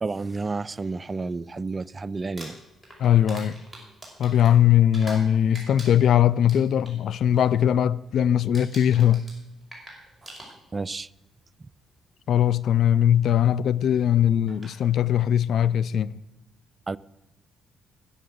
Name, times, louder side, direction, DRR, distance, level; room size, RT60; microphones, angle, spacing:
voice 1, 0.0-2.5 10.7-11.1 16.9-17.0, right 3 dB, 30° right, 0.3 m, -30 dB
Crumpling crinkling, 2.2-5.3 5.5-7.0 7.3-7.6 7.9-8.2 8.5-10.9 11.9-12.0 14.0-14.1 14.5-14.8, right 1 dB, 5° left, 5.6 m, -44 dB
voice 2, 3.0-3.6 4.2-9.2 12.3-16.2, left 10 dB, 65° left, 0.3 m, -20 dB
10.0 x 9.8 x 6.5 m
supercardioid pair, 60°, 0 cm